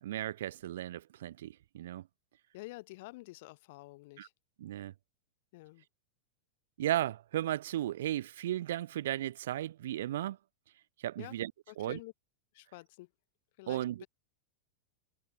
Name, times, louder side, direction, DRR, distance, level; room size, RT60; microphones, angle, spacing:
voice 1, 0.0-2.1 4.2-4.3 4.6-4.9 6.8-10.4 11.0-11.5 11.8-12.0 13.7-14.0, right 13 dB, 60° right, 0.3 m, -35 dB
voice 2, 2.5-4.3 5.5-5.8 11.2-11.4 11.7-12.1 12.5-13.1 13.6-13.8, left 21 dB, 50° left, 4.1 m, -48 dB
figure-of-eight pair, 90°, 0 cm